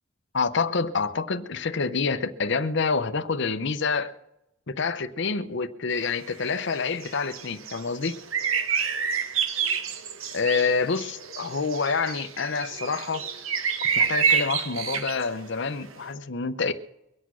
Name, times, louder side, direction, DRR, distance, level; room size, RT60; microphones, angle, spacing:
voice 1, 0.3-4.1 4.7-8.2 10.3-13.3 13.9-16.7, left 4 dB, 60° left, 0.8 m, -27 dB
sound 1, 5.9-15.4 15.8-16.1, right 6 dB, 80° right, 1.2 m, -28 dB
23.0 x 8.3 x 6.2 m
head